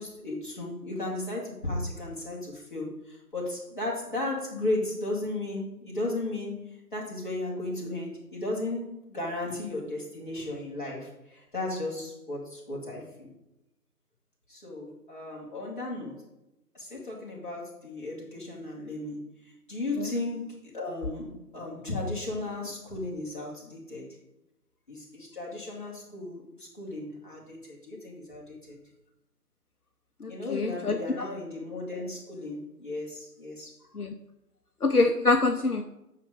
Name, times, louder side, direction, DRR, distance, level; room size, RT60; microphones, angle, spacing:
voice 1, 0.0-6.6 6.9-13.3 14.5-16.2 16.7-24.1 24.9-28.8 30.3-33.8, left 2 dB, 30° left, -4 dB, 2.4 m, -35 dB
voice 2, 30.2-31.0 33.9-34.1 34.8-35.8, left 3 dB, 65° left, 5 dB, 0.8 m, -25 dB
9.0 x 6.0 x 5.0 m, 0.89 s
figure-of-eight pair, 165°, 48 cm